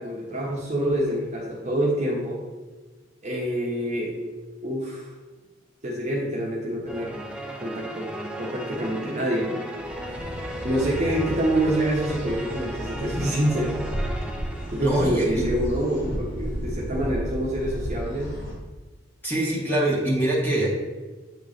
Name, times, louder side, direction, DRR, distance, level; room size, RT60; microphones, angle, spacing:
voice 1, 0.0-2.4 3.2-4.2 4.6-5.1 5.8-7.1 7.6-8.1 8.4-9.6 10.6-13.8 14.7-18.3, right 1 dB, 35° right, -3 dB, 1.0 m, -26 dB
sound 1, 6.9-15.4, right 1 dB, 5° right, 0.5 m, -36 dB
sound 2, 9.8-18.5, right 1 dB, 65° left, 1.7 m, -33 dB
voice 2, 14.8-15.4 19.2-20.7, right 1 dB, 10° left, -5 dB, 1.5 m, -24 dB
8.5 x 3.1 x 3.9 m, 1.3 s
head